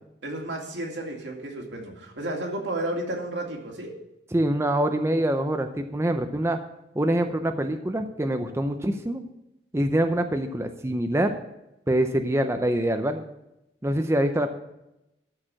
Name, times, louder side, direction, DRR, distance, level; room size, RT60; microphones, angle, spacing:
voice 1, 0.2-3.9, right 1 dB, 80° right, 0 dB, 2.4 m, -32 dB
voice 2, 4.3-6.6 7.0-9.2 9.7-11.4 11.9-13.3 13.8-14.5, right 1 dB, 15° right, 6 dB, 0.6 m, -25 dB
13.0 x 4.9 x 7.4 m, 0.88 s
head